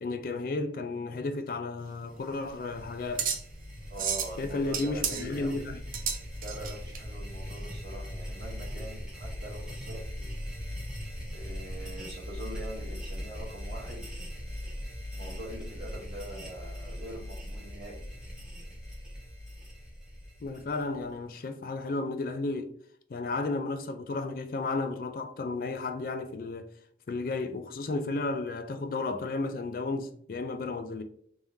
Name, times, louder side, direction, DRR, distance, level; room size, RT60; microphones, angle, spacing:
voice 1, 0.0-3.3 4.4-5.8 20.4-22.7 23.1-26.7 27.1-31.0, left 3 dB, 50° left, 0.3 m, -33 dB
sound 1, 1.8-7.0, right 7 dB, 50° right, 0.5 m, -34 dB
sound 2, 2.1-21.2, equal, 5° right, 1.0 m, -40 dB
voice 2, 3.9-5.6 6.4-10.4 11.3-14.3 15.1-18.1, right 1 dB, 80° right, 1.0 m, -43 dB
3.5 x 3.2 x 2.7 m
head